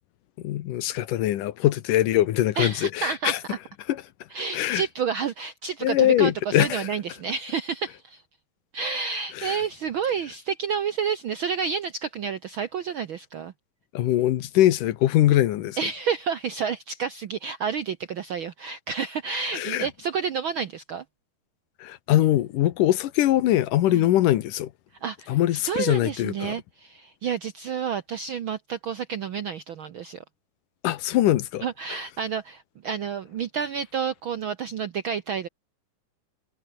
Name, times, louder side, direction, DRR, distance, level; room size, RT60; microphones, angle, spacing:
voice 1, 0.4-3.4 3.9-4.0 4.5-4.8 5.8-6.9 9.4-9.6 13.9-15.8 19.5-19.9 21.8-24.7 25.3-26.6 30.8-31.7, left 13 dB, 80° left, 2.7 m, -22 dB
voice 2, 2.6-3.6 4.3-8.2 8.7-13.5 15.8-21.0 23.9-24.1 25.0-30.2 31.6-35.5, right 6 dB, 85° right, 1.1 m, -30 dB
omnidirectional pair, 3.7 m